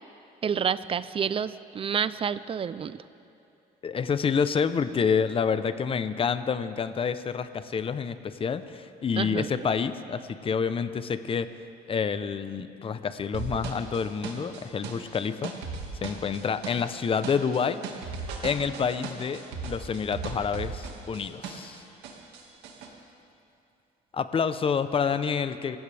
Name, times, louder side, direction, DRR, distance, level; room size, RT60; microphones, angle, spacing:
voice 1, 0.4-3.0 9.2-9.5, right 7 dB, 35° right, 15 dB, 0.5 m, -29 dB
voice 2, 3.8-11.5 11.9-15.5 16.0-17.8 18.4-21.8 24.1-25.8, left 6 dB, 35° left, 12 dB, 0.8 m, -28 dB
sound 1, 13.3-21.8 22.0-22.9, right 5 dB, 90° right, 2.1 m, -37 dB
27.0 x 15.5 x 3.5 m, 2.8 s
cardioid pair, 110°, 17 cm